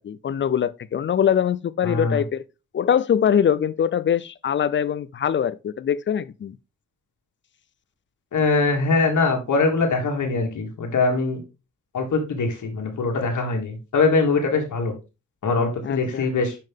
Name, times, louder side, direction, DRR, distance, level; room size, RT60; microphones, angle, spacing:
voice 1, 0.0-2.4 2.7-6.6 15.8-16.3, left 8 dB, 40° left, 0.4 m, -23 dB
voice 2, 1.8-2.2 8.3-11.4 11.9-14.9 15.4-16.6, left 3 dB, 65° left, 1.9 m, -22 dB
5.6 x 5.4 x 3.6 m
cardioid pair, 100°, 32 cm